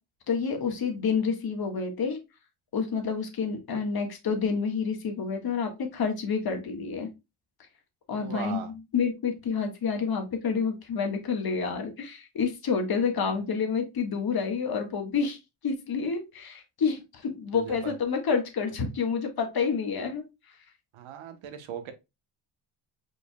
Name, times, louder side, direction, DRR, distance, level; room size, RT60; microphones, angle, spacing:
voice 1, 0.3-2.2 2.7-7.1 8.1-8.6 8.9-15.4 15.6-20.2, left 5 dB, 50° left, 1.6 m, -28 dB
voice 2, 8.2-8.7 17.5-17.9 20.9-21.9, right 9 dB, 90° right, 1.1 m, -38 dB
5.0 x 4.8 x 2.2 m
cardioid pair, 110°, 47 cm